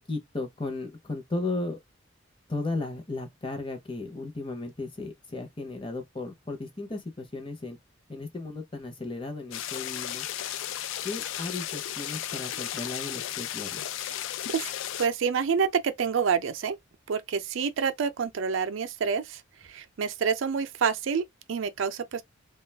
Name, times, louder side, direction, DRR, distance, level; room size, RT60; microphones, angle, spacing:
voice 1, 0.0-1.8 2.5-7.8 8.1-10.2 11.0-13.8, left 2 dB, 25° left, 0.7 m, -35 dB
sound 1, 9.5-15.1, left 11 dB, 70° left, 0.3 m, -34 dB
voice 2, 15.0-16.8 17.1-19.4 19.7-22.2, right 6 dB, 70° right, 0.4 m, -28 dB
2.3 x 2.3 x 3.3 m
head